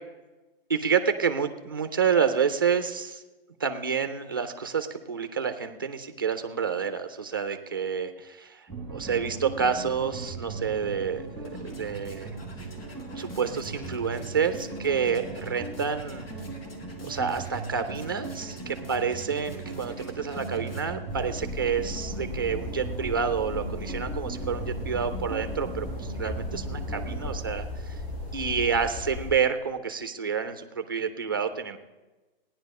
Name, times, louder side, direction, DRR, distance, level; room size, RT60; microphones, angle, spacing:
voice 1, 0.7-3.2 3.6-12.4 13.2-16.3 17.0-28.0 28.3-31.8, right 6 dB, 20° right, 8 dB, 0.4 m, -29 dB
sound 1, 8.7-27.4, right 3 dB, 5° left, 1.3 m, -38 dB
sound 2, 11.1-21.2, left 2 dB, 65° left, 2.4 m, -52 dB
sound 3, 21.1-29.3, left 2 dB, 25° left, 3.3 m, -36 dB
15.5 x 10.0 x 5.2 m, 1.2 s
hypercardioid pair, 175°, 31 cm